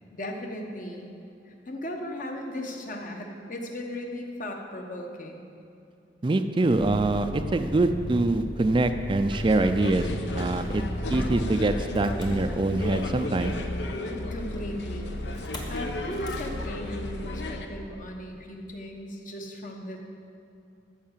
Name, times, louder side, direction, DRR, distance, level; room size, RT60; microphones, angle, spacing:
voice 1, 0.1-1.2 1.5-5.4 14.1-20.0, left 1 dB, 50° left, 2 dB, 1.1 m, -37 dB
voice 2, 6.2-10.1 10.4-10.8 11.1-13.5, right 2 dB, 30° right, 8 dB, 0.4 m, -24 dB
Motor vehicle (road), 6.7-13.1 15.3-15.8 16.1-16.5, equal, 25° left, 1.1 m, -36 dB
sound 1, 9.3-17.7, left 2 dB, 80° left, 0.8 m, -34 dB
13.0 x 4.8 x 7.3 m, 2.6 s
head